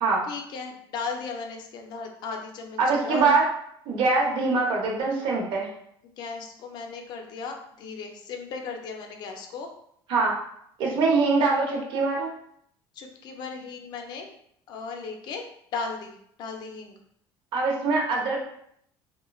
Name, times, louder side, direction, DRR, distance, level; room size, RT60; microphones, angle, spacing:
voice 1, 0.3-3.2 6.2-9.7 12.9-14.3 14.7-15.5 15.7-16.1 16.4-17.0, left 4 dB, 50° left, 3 dB, 0.4 m, -36 dB
voice 2, 2.8-3.5 3.9-5.7 10.1-10.3 10.8-12.3 17.5-18.4, right 3 dB, 60° right, -1 dB, 0.7 m, -23 dB
3.0 x 2.1 x 2.3 m, 0.70 s
cardioid pair, 150°, 9 cm